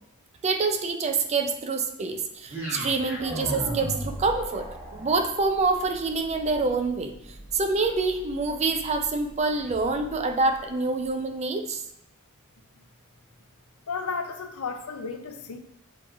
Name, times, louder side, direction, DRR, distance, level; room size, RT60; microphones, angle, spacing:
voice 1, 0.4-7.1 7.5-11.8, right 3 dB, 30° right, 5 dB, 0.4 m, -26 dB
sound 1, 2.5-10.7, right 1 dB, 10° right, 1.0 m, -38 dB
voice 2, 13.9-15.6, left 4 dB, 75° left, 6 dB, 0.5 m, -33 dB
7.1 x 3.0 x 2.3 m, 0.75 s
head